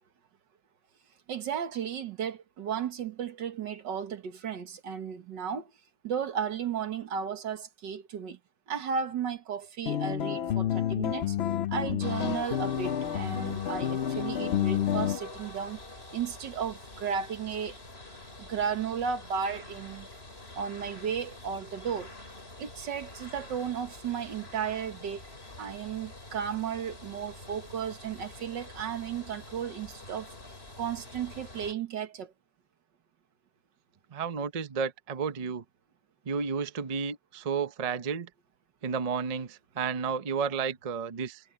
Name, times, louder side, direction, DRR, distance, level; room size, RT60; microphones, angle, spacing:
voice 1, 1.3-5.7 6.0-8.4 8.7-11.4 11.7-15.8 16.1-17.8 18.4-20.1 20.5-22.2 22.6-25.2 25.6-30.3 30.8-32.3, right 7 dB, 90° right, 2.1 m, -34 dB
sound 1, 9.9-15.2, left 10 dB, 85° left, 0.5 m, -29 dB
sound 2, 12.0-31.7, left 2 dB, 35° left, 4.2 m, -45 dB
voice 2, 34.1-35.6 36.3-38.3 38.8-41.4, right 6 dB, 35° right, 0.6 m, -32 dB
omnidirectional pair, 1.9 m